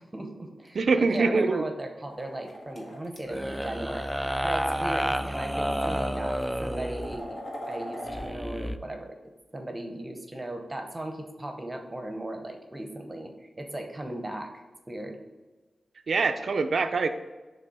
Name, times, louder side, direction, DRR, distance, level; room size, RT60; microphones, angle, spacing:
voice 1, 0.0-7.4 7.7-9.1 9.5-14.5 14.9-15.2, right 1 dB, 20° right, 4 dB, 0.9 m, -37 dB
voice 2, 0.7-1.6 16.1-17.1, right 4 dB, 70° right, 8 dB, 0.4 m, -24 dB
sound 1, 2.1-3.2 4.3-4.5 5.4-5.5 6.0-8.3, equal, 50° left, 1.4 m, -40 dB
sound 2, 3.3-7.2 8.1-8.8, equal, ahead, 0.3 m, -30 dB
6.7 x 3.3 x 4.7 m, 1.2 s
wide cardioid pair, 100°, 0 cm